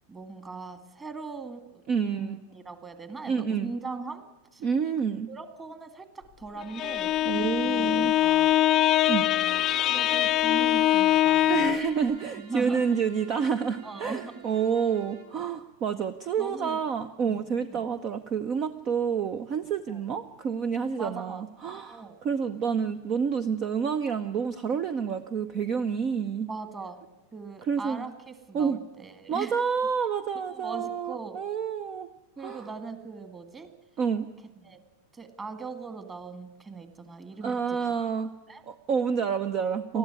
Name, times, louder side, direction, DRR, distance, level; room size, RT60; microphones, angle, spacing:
voice 1, 0.1-4.2 4.5-4.6 5.3-8.5 9.2-9.6 9.9-11.8 12.3-12.8 13.8-14.3 16.4-16.8 17.6-17.9 19.9-20.0 21.0-21.4 21.9-22.2 26.5-27.0 27.3-29.5 30.5-31.4 32.4-33.7 34.6-34.8 35.1-37.8 38.5-38.6 39.9-40.0, right 4 dB, 15° right, 10 dB, 2.0 m, -40 dB
voice 2, 1.9-2.4 3.3-3.7 4.6-5.3 7.2-8.1 9.1-9.2 11.5-26.5 27.7-28.1 28.5-28.8 29.3-32.1 32.4-32.6 34.0-34.3 37.4-38.3 38.7-40.0, right 6 dB, 35° right, 12 dB, 0.8 m, -28 dB
Bowed string instrument, 6.6-12.0, left 13 dB, 30° left, 0.6 m, -23 dB
Bowed string instrument 2, 9.2-15.4, right 5 dB, 65° right, 5.7 m, -48 dB
20.5 x 14.0 x 9.5 m, 1.0 s
figure-of-eight pair, 90°, 0 cm